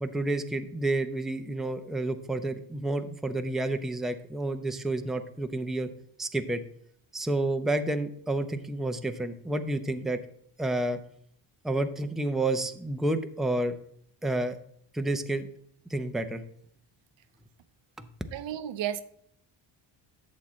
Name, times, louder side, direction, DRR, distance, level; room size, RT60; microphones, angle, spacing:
voice 1, 0.0-5.9 6.2-6.6 7.1-10.2 10.6-11.0 11.6-13.7 14.2-14.6 14.9-15.5 15.9-16.4 18.0-18.1, right 2 dB, ahead, 0.6 m, -30 dB
voice 2, 18.3-19.0, right 11 dB, 70° right, 0.8 m, -32 dB
11.5 x 7.4 x 3.1 m
cardioid pair, 105°, 46 cm